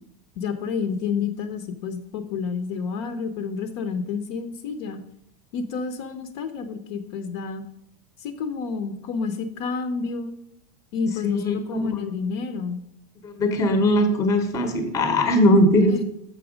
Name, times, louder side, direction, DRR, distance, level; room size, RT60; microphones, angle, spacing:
voice 1, 0.4-5.0 5.5-7.6 8.2-10.3 10.9-12.8 15.9-16.0, left 5 dB, 50° left, 8 dB, 0.7 m, -29 dB
voice 2, 11.2-12.0 13.2-16.0, left 1 dB, 15° left, 7 dB, 0.9 m, -20 dB
6.7 x 6.2 x 5.0 m, 0.74 s
supercardioid pair, 165°, 18 cm